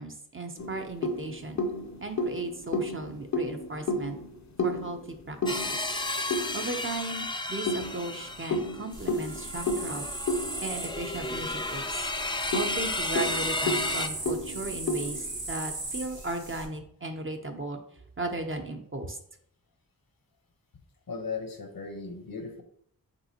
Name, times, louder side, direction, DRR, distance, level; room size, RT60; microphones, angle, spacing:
voice 1, 0.0-1.6 2.0-4.2 4.6-5.4 5.6-5.8 6.5-10.1 10.6-12.0 12.5-17.8 18.2-19.2, right 2 dB, 35° right, 5 dB, 0.6 m, -36 dB
sound 1, 0.6-7.0 7.7-11.5 11.9-12.0 12.3-15.9, left 1 dB, 50° left, 0.6 m, -33 dB
sound 2, 5.5-14.1, left 2 dB, 15° left, 0.4 m, -33 dB
sound 3, 8.9-16.6, right 2 dB, 75° right, 1.4 m, -38 dB
voice 2, 21.1-22.6, left 4 dB, 70° left, 5 dB, 0.9 m, -37 dB
5.3 x 3.4 x 2.8 m, 0.65 s
wide cardioid pair, 55°, 36 cm